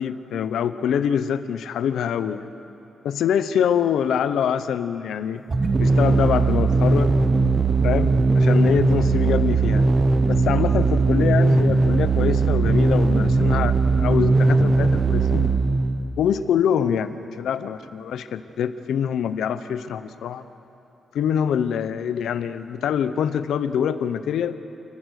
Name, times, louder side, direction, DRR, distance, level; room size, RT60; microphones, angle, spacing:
voice 1, 0.0-2.5 3.0-5.4 5.8-7.1 7.8-9.9 10.3-15.5 16.2-20.4 21.1-24.6, left 8 dB, 90° left, 12 dB, 0.8 m, -24 dB
sound 1, 5.5-16.2, right 3 dB, 30° right, 0.9 m, -19 dB
29.0 x 15.0 x 6.6 m, 2.9 s
wide cardioid pair, 150°, 0 cm